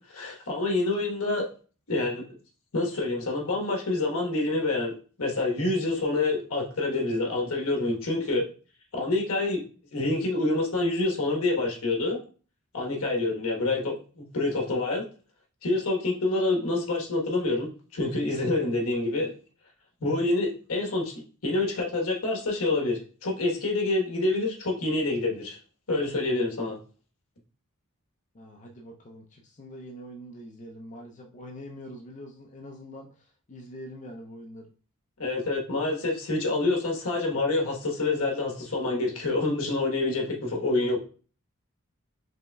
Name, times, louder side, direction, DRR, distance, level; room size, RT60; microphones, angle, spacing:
voice 1, 0.1-1.5 1.9-2.2 2.7-4.9 5.2-8.5 8.9-9.6 9.9-12.2 12.7-15.1 15.6-19.3 20.0-21.1 21.4-25.6 25.9-26.8 35.2-41.0, left 2 dB, 75° left, 1 dB, 1.2 m, -27 dB
voice 2, 28.3-34.7, equal, 35° left, 0 dB, 0.4 m, -44 dB
5.2 x 3.2 x 2.2 m, 0.38 s
head